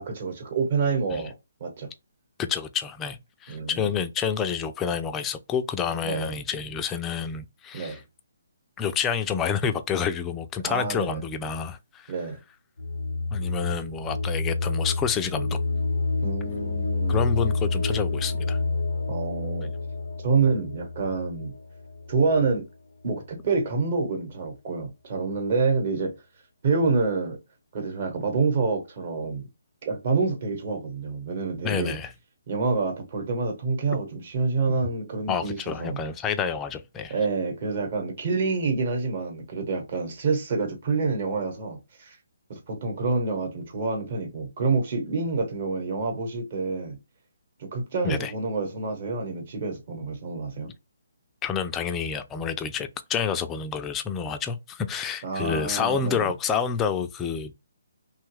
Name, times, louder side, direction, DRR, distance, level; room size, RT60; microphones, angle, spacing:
voice 1, 0.0-1.3 1.6-1.9 3.5-3.9 6.0-6.3 7.7-8.0 10.6-11.2 12.1-12.4 16.2-17.2 19.1-19.7 20.2-21.5 22.1-22.6 23.0-26.1 26.6-27.4 27.7-29.5 29.8-31.9 32.5-36.0 37.1-42.2 42.5-47.0 47.6-50.7 55.2-56.3, right 4 dB, 45° right, 1.1 m, -27 dB
voice 2, 2.4-8.0 8.8-12.1 13.3-15.6 17.1-18.6 31.6-32.1 34.7-34.8 35.3-37.1 48.0-48.3 51.4-57.5, left 7 dB, 15° left, 0.3 m, -28 dB
sound 1, 12.8-22.6, left 3 dB, 85° left, 0.4 m, -29 dB
2.9 x 2.2 x 3.1 m
hypercardioid pair, 155°, 0 cm